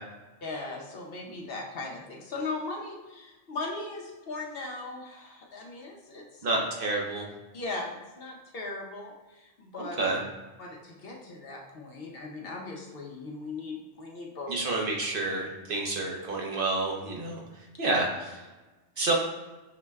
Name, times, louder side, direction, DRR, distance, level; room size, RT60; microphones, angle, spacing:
voice 1, 0.4-6.5 7.5-10.0 10.6-14.5 19.0-19.1, left 3 dB, 60° left, -1 dB, 0.8 m, -38 dB
voice 2, 6.4-7.3 10.0-10.2 14.5-17.4 17.8-18.4 19.0-19.1, right 2 dB, 55° right, -1 dB, 0.8 m, -29 dB
5.8 x 2.1 x 3.4 m, 1.2 s
omnidirectional pair, 1.2 m